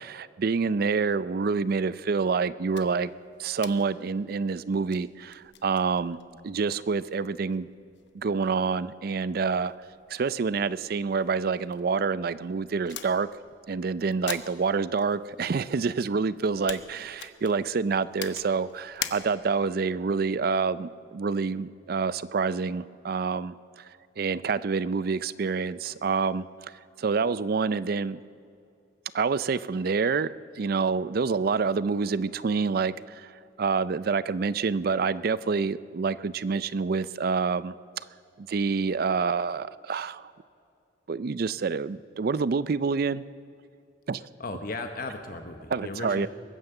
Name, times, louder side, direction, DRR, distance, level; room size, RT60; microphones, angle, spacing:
voice 1, 0.0-3.1 3.4-6.2 6.4-7.7 8.1-9.7 10.1-13.3 13.7-23.8 24.2-26.5 27.0-28.2 29.1-33.3 33.6-37.7 38.4-40.3 41.1-43.2 44.1-44.2 45.7-46.3, right 5 dB, 55° right, 17 dB, 0.4 m, -27 dB
sound 1, 2.7-19.7, left 9 dB, 80° left, 0.9 m, -45 dB
voice 2, 44.4-46.3, left 2 dB, 55° left, 6 dB, 1.0 m, -36 dB
22.0 x 9.7 x 6.7 m, 2.4 s
head